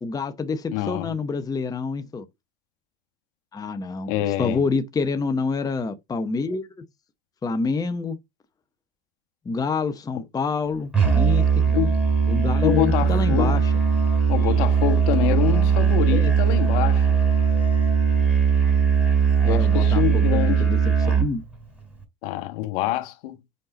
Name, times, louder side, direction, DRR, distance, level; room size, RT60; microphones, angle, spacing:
voice 1, 0.0-2.3 3.5-4.1 4.4-6.7 7.4-8.2 9.5-11.6 12.3-13.7 16.1-16.3 19.4-20.8 21.1-21.4, left 4 dB, 10° left, 0.7 m, -27 dB
voice 2, 0.7-1.1 4.1-4.6 10.1-10.2 11.7-12.0 12.6-13.6 14.3-17.2 19.4-20.7 22.2-23.4, left 14 dB, 60° left, 1.3 m, -26 dB
Musical instrument, 10.9-21.3, right 6 dB, 5° right, 3.5 m, -19 dB
5.6 x 5.3 x 3.7 m
hypercardioid pair, 100°, 30 cm